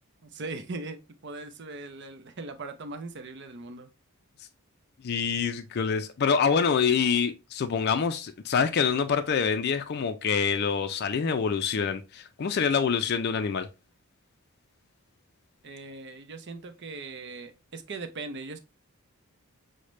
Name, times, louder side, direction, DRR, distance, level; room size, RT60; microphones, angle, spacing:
voice 1, 0.2-3.9 15.6-18.6, right 3 dB, 50° right, 0.6 m, -39 dB
voice 2, 5.0-13.7, left 6 dB, 45° left, 0.4 m, -26 dB
6.4 x 2.1 x 3.1 m
head